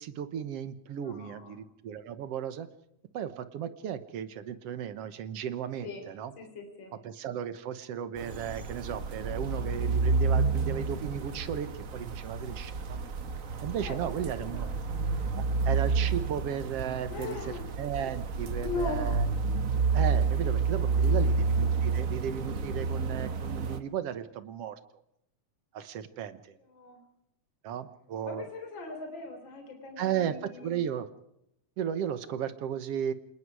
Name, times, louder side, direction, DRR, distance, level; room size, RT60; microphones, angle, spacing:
voice 1, 0.0-2.7 3.1-6.3 7.0-13.0 13.6-14.7 15.3-19.2 19.9-24.8 25.7-26.6 27.6-28.4 30.0-31.1 31.8-33.1, right 9 dB, 60° right, 12 dB, 1.9 m, -35 dB
voice 2, 0.9-1.6 5.8-6.1 6.4-6.9 13.8-14.0 14.5-14.7 17.1-17.7 18.6-19.3 20.8-21.4 26.7-27.0 28.2-30.8, left 3 dB, 40° left, 4 dB, 4.3 m, -39 dB
sound 1, 8.2-23.8, right 4 dB, 80° right, 0.7 m, -29 dB
27.5 x 19.5 x 4.8 m, 0.77 s
omnidirectional pair, 3.5 m